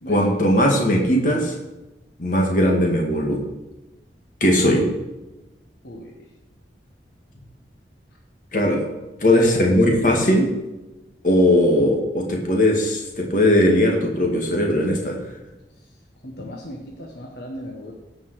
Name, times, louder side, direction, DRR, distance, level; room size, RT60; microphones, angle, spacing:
voice 1, 0.1-1.5 2.2-3.4 4.4-4.8 8.5-8.8 9.2-10.5 11.2-15.2, left 1 dB, 50° left, 0 dB, 2.0 m, -18 dB
voice 2, 5.8-6.1 9.3-9.5 16.2-17.9, left 1 dB, 70° left, -1 dB, 1.3 m, -36 dB
16.5 x 5.5 x 4.9 m, 1.0 s
head